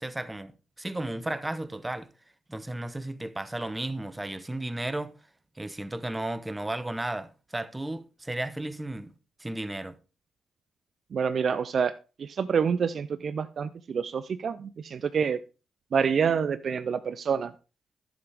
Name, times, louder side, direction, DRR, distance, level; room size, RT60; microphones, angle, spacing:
voice 1, 0.0-2.1 2.5-5.1 5.6-9.1 9.4-10.0, right 1 dB, 15° right, 0.9 m, -34 dB
voice 2, 11.1-15.4 15.9-17.5, right 6 dB, 55° right, 0.4 m, -27 dB
11.0 x 7.1 x 3.4 m
hypercardioid pair, 40°, 0 cm